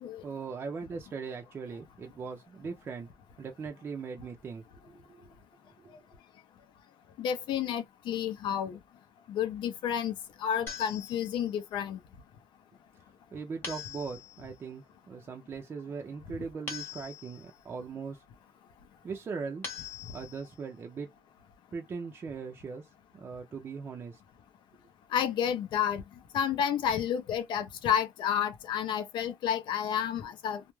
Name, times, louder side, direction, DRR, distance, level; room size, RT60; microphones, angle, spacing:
voice 1, 0.2-3.1 3.4-5.3 5.8-6.0 13.3-18.2 19.0-19.7 20.1-21.1 21.7-24.2, right 5 dB, 30° right, 0.4 m, -40 dB
voice 2, 7.2-8.8 9.3-12.0 25.1-26.0 26.3-30.6, left 9 dB, 75° left, 0.5 m, -30 dB
sound 1, 10.7-11.6 13.6-14.5 16.7-17.6 19.6-20.6, left 6 dB, 30° left, 0.9 m, -42 dB
2.3 x 2.0 x 3.0 m
cardioid pair, 175°, 8 cm